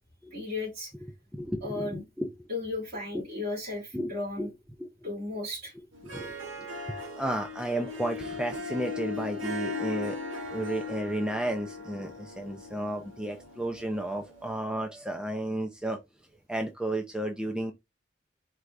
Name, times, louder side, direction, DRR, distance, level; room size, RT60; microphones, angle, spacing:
voice 1, 0.3-0.9 1.6-2.0 2.5-4.5 5.0-5.7, left 2 dB, 50° right, 3.0 m, -35 dB
voice 2, 0.9-2.5 3.9-4.5 4.8-5.1 6.0-10.2 10.5-16.0 16.5-17.7, right 1 dB, 5° right, 0.5 m, -33 dB
Harp, 5.9-14.5, left 3 dB, 75° right, 1.5 m, -38 dB
4.7 x 3.3 x 2.5 m
head